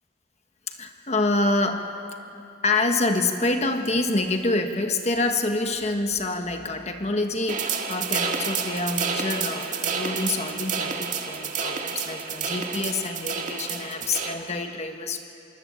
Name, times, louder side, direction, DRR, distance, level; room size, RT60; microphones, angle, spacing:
voice 1, 0.7-1.9 2.6-15.2, left 2 dB, 35° left, 5 dB, 1.5 m, -27 dB
sound 1, 7.5-14.3, right 6 dB, 40° right, 1.8 m, -29 dB
25.5 x 22.5 x 8.9 m, 2.7 s
head